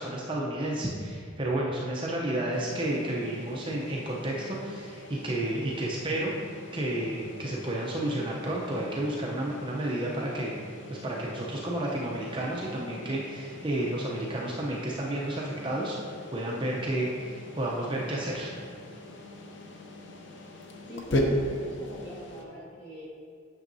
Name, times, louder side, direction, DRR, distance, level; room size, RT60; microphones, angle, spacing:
voice 1, 0.0-6.3 6.7-10.5 10.9-16.0 16.3-18.5, right 1 dB, 25° right, -3 dB, 0.6 m, -31 dB
sound 1, 2.5-22.4, left 1 dB, 60° left, 0.7 m, -39 dB
voice 2, 20.9-23.1, equal, 20° left, -6 dB, 1.5 m, -42 dB
8.9 x 6.4 x 2.7 m, 2.1 s
head